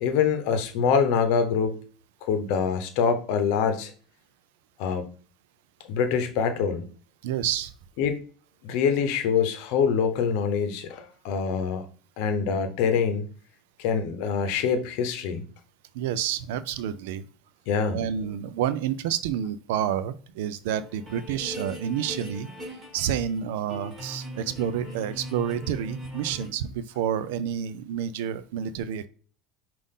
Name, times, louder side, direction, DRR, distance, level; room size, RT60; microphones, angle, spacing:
voice 1, 0.0-1.8 2.2-3.9 4.8-5.1 5.9-6.9 8.0-8.2 8.6-11.9 12.2-13.3 13.8-15.4 17.7-18.0, left 6 dB, 70° left, 0.8 m, -25 dB
voice 2, 7.2-7.7 15.9-17.3 17.9-22.5 22.9-29.1, right 9 dB, 85° right, 0.4 m, -29 dB
sound 1, 20.6-23.4 23.7-26.5, equal, 20° right, 2.0 m, -40 dB
5.4 x 2.5 x 3.7 m
supercardioid pair, 125°, 0 cm